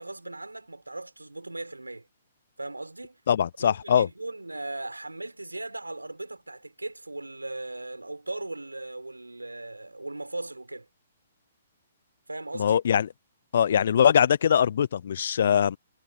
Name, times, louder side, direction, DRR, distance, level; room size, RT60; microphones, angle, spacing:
voice 1, 0.0-2.1 2.6-3.2 3.6-10.9 12.3-12.8, right 2 dB, 85° right, 4.5 m, -38 dB
voice 2, 3.3-4.1 12.6-13.1 13.5-15.8, left 8 dB, 55° left, 0.8 m, -22 dB
figure-of-eight pair, 125°, 0 cm